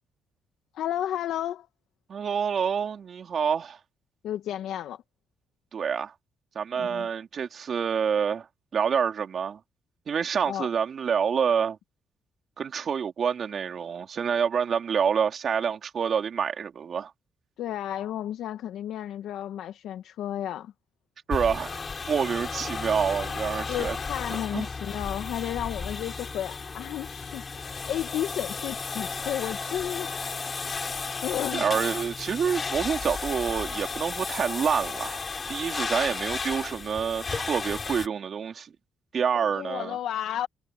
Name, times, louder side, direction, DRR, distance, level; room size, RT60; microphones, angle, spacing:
voice 1, 0.7-1.7 4.2-5.0 6.8-7.1 10.4-10.7 17.6-20.7 23.7-30.2 31.2-31.7 39.3-40.5, left 11 dB, 80° left, 1.1 m, -32 dB
voice 2, 2.1-3.8 5.7-6.1 6.5-8.5 8.7-9.6 10.1-11.8 12.6-17.1 21.3-23.9 24.5-24.7 31.5-35.2 35.5-38.7 39.1-40.0, right 7 dB, 55° right, 3.3 m, -27 dB
sound 1, 21.3-38.1, left 4 dB, 35° left, 6.1 m, -34 dB
cardioid pair, 90°, 0 cm